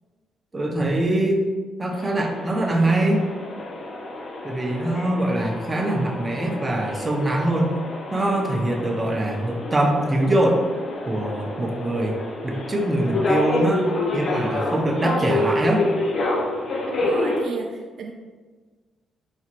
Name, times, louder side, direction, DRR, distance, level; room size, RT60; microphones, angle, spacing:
voice 1, 0.5-1.4 1.8-3.3 4.4-7.7 8.1-10.6 11.1-12.2 12.4-13.9 14.1-15.9, right 1 dB, 25° right, 0 dB, 0.6 m, -23 dB
sound 1, 1.9-17.4, left 2 dB, 50° left, 0.6 m, -28 dB
voice 2, 16.9-18.1, right 4 dB, 65° right, 2 dB, 0.3 m, -33 dB
4.1 x 2.9 x 2.4 m, 1.4 s
cardioid pair, 90°, 0 cm